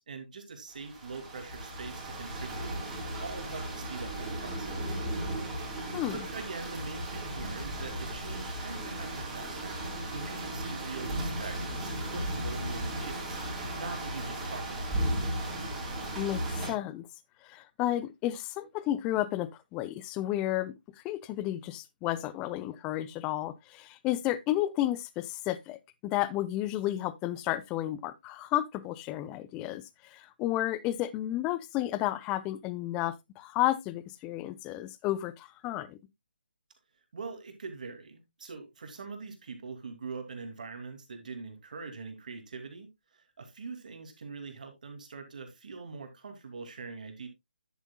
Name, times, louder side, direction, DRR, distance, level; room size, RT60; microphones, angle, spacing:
voice 1, 0.0-5.1 6.1-14.9 37.1-47.3, right 4 dB, 55° right, 2.6 m, -43 dB
sound 1, 0.7-16.7, right 1 dB, 10° right, 3.8 m, -35 dB
voice 2, 16.1-17.1 17.4-20.7 21.0-36.0, left 14 dB, 15° left, 0.6 m, -32 dB
10.5 x 8.1 x 2.3 m
figure-of-eight pair, 150°, 5 cm